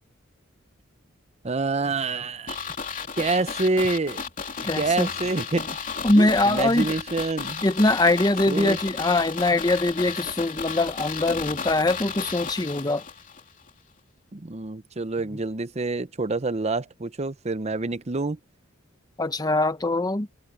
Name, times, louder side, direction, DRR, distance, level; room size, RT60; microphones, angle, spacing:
voice 1, 1.4-2.6 3.2-4.2 4.6-5.7 6.2-7.6 8.5-8.8 14.3-18.4, right 3 dB, 30° right, 0.7 m, -27 dB
sound 1, 2.5-13.4 13.7-13.8, left 6 dB, 40° left, 2.9 m, -33 dB
voice 2, 4.6-5.1 6.0-6.9 7.6-13.0 19.2-20.3, left 2 dB, 20° left, 0.9 m, -22 dB
head